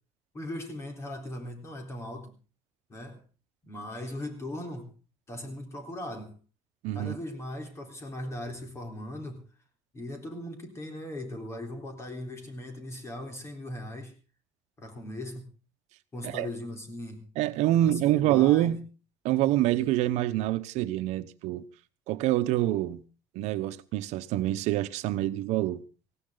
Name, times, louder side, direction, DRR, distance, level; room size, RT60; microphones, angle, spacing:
voice 1, 0.3-2.3 2.9-3.2 3.6-4.9 5.3-6.4 6.9-9.4 9.9-14.1 14.8-15.5 16.1-17.2 17.7-17.9 18.1-18.7, left 1 dB, 25° left, 3.9 m, -39 dB
voice 2, 6.8-7.2 16.2-16.5 17.4-18.8 19.2-21.7 22.1-23.0 23.3-25.8, right 14 dB, 80° right, 1.0 m, -26 dB
18.5 x 16.0 x 3.9 m
cardioid pair, 150°, 11 cm